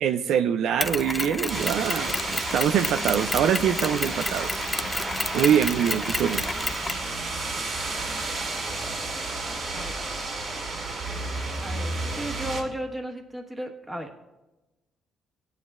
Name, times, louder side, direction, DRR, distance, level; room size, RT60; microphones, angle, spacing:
voice 1, 0.0-4.7 5.3-6.4, right 9 dB, 80° right, 10 dB, 0.4 m, -24 dB
Mechanisms, 0.8-7.1, left 3 dB, 20° left, 0.5 m, -31 dB
sound 1, 1.5-12.6, right 3 dB, 55° right, 2.3 m, -32 dB
voice 2, 11.6-14.2, equal, 15° right, 3 dB, 1.3 m, -35 dB
15.5 x 9.3 x 2.4 m, 1.0 s
cardioid pair, 90°, 0 cm